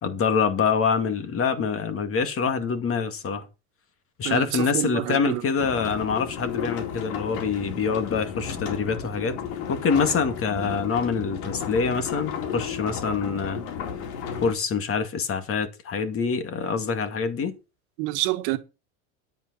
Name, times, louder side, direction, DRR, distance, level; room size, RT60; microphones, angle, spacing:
voice 1, 0.0-3.5 4.2-9.4 9.7-13.6 14.4-17.6, left 5 dB, 30° left, 2.3 m, -25 dB
voice 2, 4.2-5.4 18.0-18.6, right 18 dB, 55° right, 1.9 m, -27 dB
sound 1, 5.6-14.5, left 7 dB, 65° left, 4.1 m, -33 dB
11.0 x 8.6 x 5.8 m
supercardioid pair, 120°, 46 cm